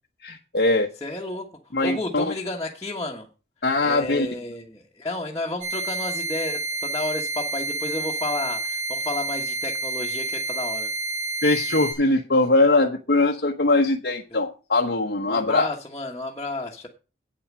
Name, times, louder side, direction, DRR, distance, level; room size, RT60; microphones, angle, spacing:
voice 1, 0.2-0.9 1.7-2.3 3.6-4.3 11.4-15.7, left 2 dB, 65° left, 0 dB, 1.1 m, -21 dB
voice 2, 1.0-3.3 3.8-10.9 15.2-16.9, left 2 dB, 15° left, -4 dB, 1.4 m, -32 dB
sound 1, 5.6-11.9, right 3 dB, 40° right, 5.4 m, -29 dB
8.8 x 8.8 x 6.2 m, 0.34 s
head